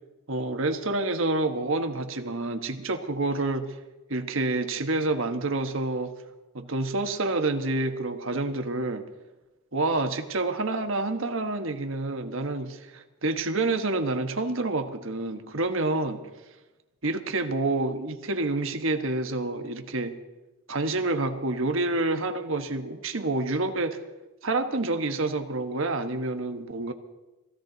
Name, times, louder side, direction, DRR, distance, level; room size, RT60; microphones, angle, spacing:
voice 1, 0.3-3.7 4.1-6.1 6.5-9.0 9.7-16.2 17.0-20.2 20.7-24.0 24.4-26.9, right 2 dB, 65° right, 6 dB, 1.3 m, -28 dB
20.5 x 15.5 x 4.0 m, 1.1 s
head